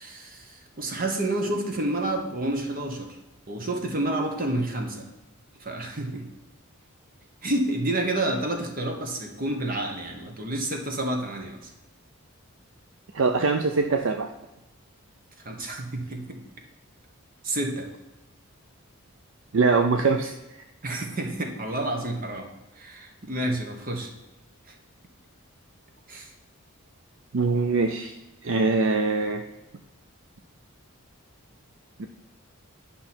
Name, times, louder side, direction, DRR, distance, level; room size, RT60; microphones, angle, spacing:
voice 1, 0.0-3.1 3.5-5.1 5.6-6.2 7.4-11.6 15.4-16.4 17.4-17.9 20.8-22.5 22.8-24.1 26.1-26.3, right 1 dB, 40° right, 4 dB, 1.2 m, -29 dB
voice 2, 13.1-14.3 19.5-20.3 27.3-28.1 28.4-29.4 32.0-32.1, right 4 dB, 60° right, 6 dB, 0.5 m, -23 dB
10.0 x 5.7 x 4.4 m, 1.0 s
head